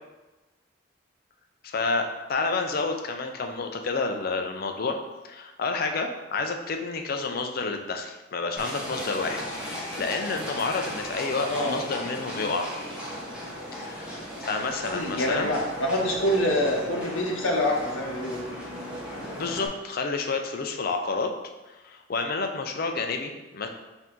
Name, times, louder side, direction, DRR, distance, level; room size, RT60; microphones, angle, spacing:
voice 1, 1.6-5.0 5.2-12.7 13.8-14.2 14.4-15.5 19.2-21.3 21.7-23.7, left 4 dB, 50° left, 5 dB, 0.4 m, -29 dB
Livestock farm animals working animals, 8.6-19.7, equal, 5° right, 0.9 m, -36 dB
voice 2, 14.9-18.5, left 1 dB, 85° left, -1 dB, 0.8 m, -26 dB
4.6 x 2.7 x 3.7 m, 1.1 s
head